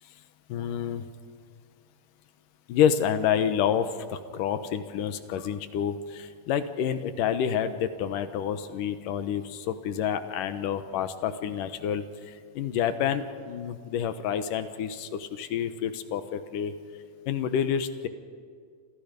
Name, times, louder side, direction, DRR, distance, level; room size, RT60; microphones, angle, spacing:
voice 1, 0.5-1.1 2.7-16.7 17.3-18.1, left 8 dB, 85° left, 10 dB, 2.8 m, -28 dB
28.5 x 26.5 x 5.3 m, 2.2 s
omnidirectional pair, 3.7 m